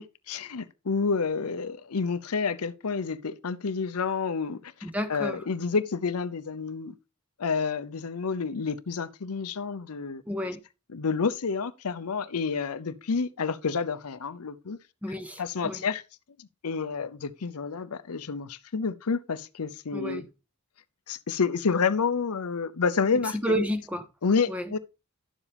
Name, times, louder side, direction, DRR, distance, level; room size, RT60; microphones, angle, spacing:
voice 1, 0.0-4.7 5.1-6.9 7.4-10.2 10.9-14.8 15.4-16.0 16.4-20.2 21.1-23.3 24.2-24.8, left 5 dB, 90° left, 0.7 m, -29 dB
voice 2, 4.8-5.4 10.3-10.6 15.0-15.8 19.9-20.2 23.2-24.0 24.5-24.7, equal, 5° right, 0.8 m, -31 dB
11.0 x 7.3 x 3.4 m
head